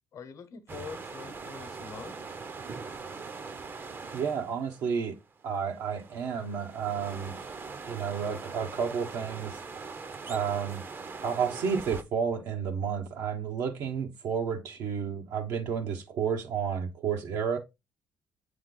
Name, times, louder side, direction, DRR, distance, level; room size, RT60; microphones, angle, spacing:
voice 1, 0.1-2.2, left 6 dB, 55° left, 0.9 m, -44 dB
sound 1, 0.7-12.0, right 4 dB, 35° right, 0.7 m, -42 dB
voice 2, 4.1-5.1 5.4-7.3 7.9-9.5 10.3-10.8 11.2-17.6, right 7 dB, 75° right, 1.0 m, -31 dB
8.0 x 3.3 x 3.8 m
cardioid pair, 85°, 6 cm